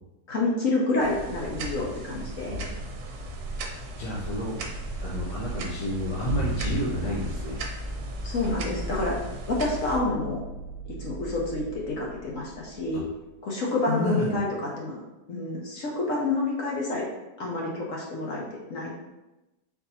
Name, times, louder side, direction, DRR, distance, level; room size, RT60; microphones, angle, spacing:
voice 1, 0.3-2.6 8.2-9.2 9.5-10.4 10.8-13.0 13.4-15.0 15.3-17.1 17.4-18.4 18.7-19.0, left 2 dB, 60° left, -3 dB, 1.1 m, -28 dB
sound 1, 1.0-10.0, right 1 dB, 70° right, 1.1 m, -35 dB
voice 2, 3.9-4.6 5.0-7.6 12.9-13.0 13.8-14.3, left 1 dB, 80° left, -6 dB, 1.4 m, -30 dB
sound 2, 4.6-13.3, left 1 dB, 40° left, 0.8 m, -39 dB
4.6 x 2.6 x 4.1 m, 1.0 s
omnidirectional pair, 1.7 m